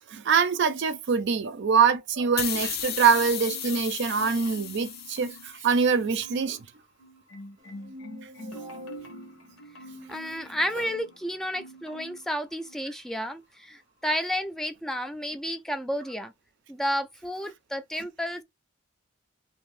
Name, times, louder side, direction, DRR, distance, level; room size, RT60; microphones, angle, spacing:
voice 1, 0.1-6.6, right 6 dB, 60° right, 0.5 m, -24 dB
sound 1, 2.4-5.8, left 10 dB, 50° left, 0.5 m, -34 dB
Marimba xylophone, 3.1-3.8 4.1-5.6 5.9-6.6 7.0-11.2 11.5-12.3 12.6-12.8, right 1 dB, 75° left, 0.9 m, -46 dB
sound 2, 7.6-11.0, equal, 20° right, 0.8 m, -47 dB
voice 2, 10.1-16.3 16.7-18.4, equal, ahead, 0.3 m, -31 dB
2.7 x 2.6 x 3.1 m
head